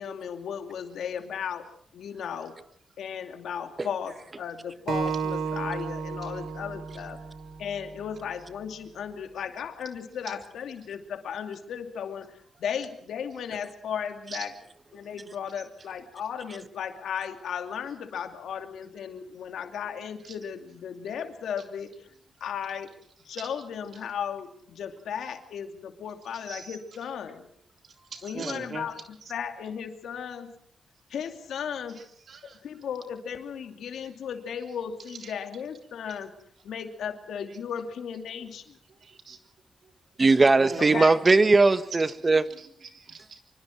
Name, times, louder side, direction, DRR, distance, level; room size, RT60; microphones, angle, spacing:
voice 1, 0.0-1.7 1.9-2.6 3.0-7.2 7.6-14.5 14.9-22.1 22.4-22.9 23.2-27.5 28.2-30.5 31.1-32.0 32.4-36.3 36.6-38.8 40.8-41.2, left 7 dB, 90° left, 6 dB, 2.6 m, -35 dB
Acoustic guitar, 4.9-8.2, right 5 dB, 80° right, 3.7 m, -33 dB
voice 2, 26.5-26.8 28.1-28.9 32.3-32.6 35.2-35.3 39.0-39.4 40.6-41.3 42.0-43.4, right 5 dB, 65° right, 5 dB, 3.6 m, -41 dB
voice 3, 40.2-42.4, right 3 dB, 35° right, 12 dB, 1.5 m, -19 dB
25.5 x 25.5 x 4.6 m, 0.64 s
cardioid pair, 70°, 0 cm